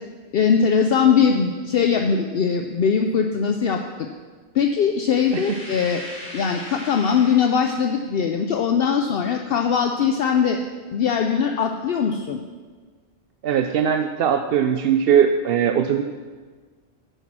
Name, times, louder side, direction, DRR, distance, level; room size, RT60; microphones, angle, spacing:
voice 1, 0.3-4.1 4.5-6.0 6.3-10.6 10.9-12.4, left 6 dB, 65° left, 4 dB, 0.8 m, -21 dB
sound 1, 5.2-7.9, equal, 5° left, 3.5 m, -39 dB
voice 2, 13.4-16.0, right 8 dB, 65° right, 7 dB, 0.7 m, -20 dB
9.1 x 8.3 x 6.1 m, 1.5 s
omnidirectional pair, 1.1 m